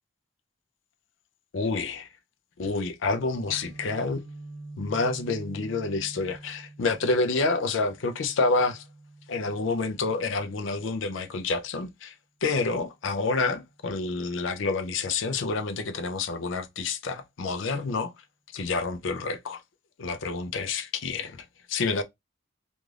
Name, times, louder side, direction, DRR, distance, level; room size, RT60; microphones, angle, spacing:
voice 1, 1.5-2.1 2.6-4.2 4.8-8.8 9.3-12.1 12.4-18.1 18.5-19.6 20.0-22.0, left 3 dB, 75° left, 0.5 m, -28 dB
Guitar, 3.4-11.3, right 2 dB, 85° right, 0.7 m, -46 dB
2.5 x 2.3 x 3.1 m
head